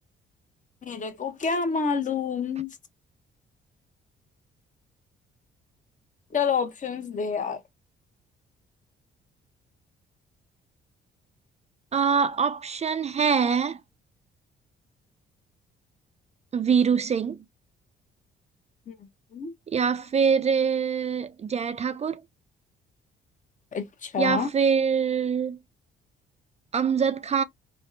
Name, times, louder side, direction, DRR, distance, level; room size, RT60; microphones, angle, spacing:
voice 1, 0.8-2.7 6.3-7.6 18.9-19.0 19.3-19.5 23.7-24.5, left 6 dB, 40° left, 0.7 m, -28 dB
voice 2, 11.9-13.8 16.5-17.4 19.7-22.2 24.2-25.6 26.7-27.4, right 6 dB, 35° right, 0.4 m, -24 dB
3.4 x 2.0 x 2.5 m
cardioid pair, 90°, 20 cm